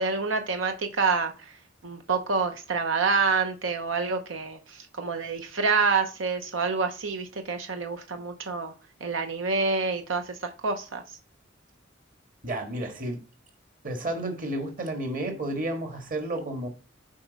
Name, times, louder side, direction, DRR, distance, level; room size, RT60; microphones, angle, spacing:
voice 1, 0.0-1.5 1.8-8.7 9.0-11.0, right 4 dB, 90° right, 0.8 m, -27 dB
voice 2, 12.4-13.2 13.8-16.7, right 1 dB, 45° right, 1.6 m, -31 dB
7.4 x 5.0 x 4.1 m
head